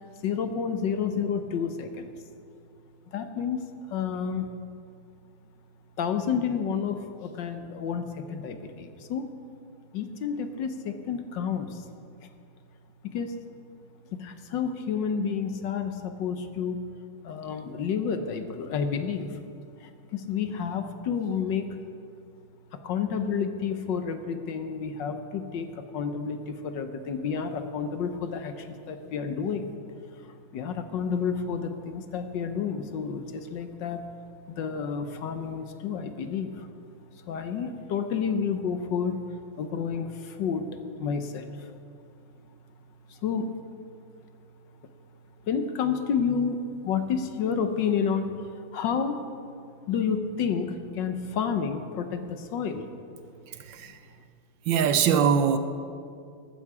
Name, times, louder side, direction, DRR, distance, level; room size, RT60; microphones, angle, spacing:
voice 1, 0.2-2.1 3.1-4.5 6.0-9.3 9.9-11.8 13.0-13.3 14.1-16.8 17.2-19.4 19.8-21.8 22.7-29.7 30.2-34.0 34.6-36.7 37.2-39.2 39.6-41.7 43.1-43.5 45.5-49.2 49.9-52.9 53.9-54.0, left 6 dB, 65° left, 8 dB, 1.4 m, -30 dB
voice 2, 53.5-54.0 54.7-55.6, right 7 dB, 70° right, 10 dB, 1.3 m, -23 dB
14.5 x 13.0 x 4.9 m, 2.3 s
omnidirectional pair, 2.3 m